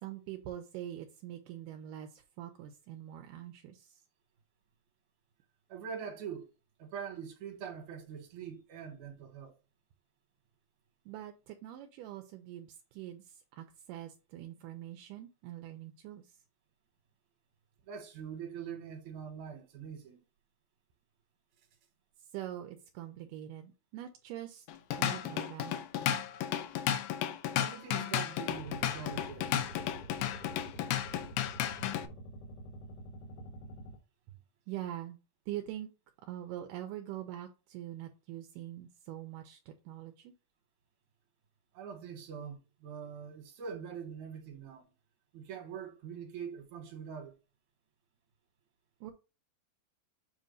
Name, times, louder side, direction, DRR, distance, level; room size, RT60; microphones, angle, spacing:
voice 1, 0.0-4.0 11.1-16.4 22.3-24.7 25.0-25.8 28.0-28.1 34.7-35.2 35.5-35.9 36.2-40.3 49.0-49.1, right 12 dB, 80° right, 2.0 m, -44 dB
voice 2, 5.7-6.5 6.8-9.6 17.8-20.2 27.6-29.7 41.7-44.9 45.3-47.3, right 7 dB, 60° right, 2.5 m, -43 dB
Drum kit / Drum, 24.7-32.1, left 10 dB, 80° left, 1.9 m, -33 dB
sound 1, 28.5-34.0, right 1 dB, 60° left, 1.7 m, -48 dB
7.4 x 2.6 x 5.2 m
omnidirectional pair, 4.3 m